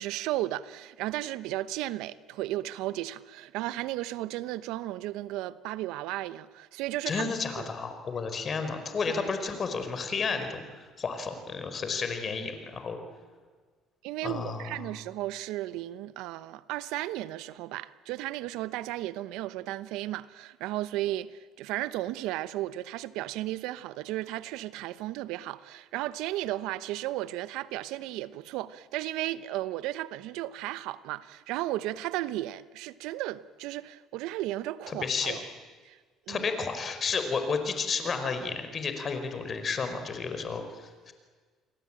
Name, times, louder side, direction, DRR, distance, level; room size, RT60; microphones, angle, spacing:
voice 1, 0.0-7.3 7.6-7.7 14.0-35.4 35.8-36.0 36.3-36.5, right 15 dB, 80° right, 0.9 m, -34 dB
voice 2, 7.1-13.0 14.2-14.9 34.9-35.4 36.3-41.1, left 5 dB, 40° left, 4.8 m, -32 dB
29.0 x 22.5 x 9.0 m
supercardioid pair, 75°, 0 cm